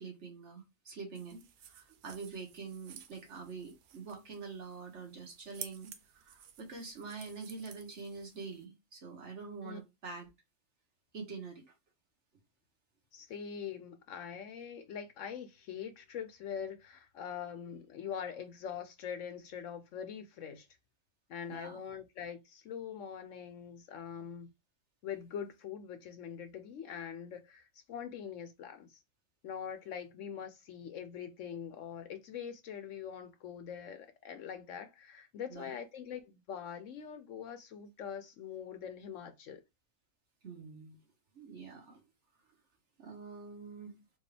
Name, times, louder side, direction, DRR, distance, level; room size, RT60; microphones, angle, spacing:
voice 1, 0.0-10.3 11.1-11.7 21.5-21.8 35.5-35.7 40.4-41.0 41.3-42.1 43.0-44.0, right 4 dB, 55° right, 1.4 m, -46 dB
sound 1, 1.2-8.7, right 9 dB, 90° right, 1.1 m, -53 dB
voice 2, 13.1-20.7 21.3-24.5 25.0-29.0 29.4-39.6, left 8 dB, 65° left, 0.9 m, -43 dB
4.4 x 2.4 x 3.2 m
omnidirectional pair, 1.5 m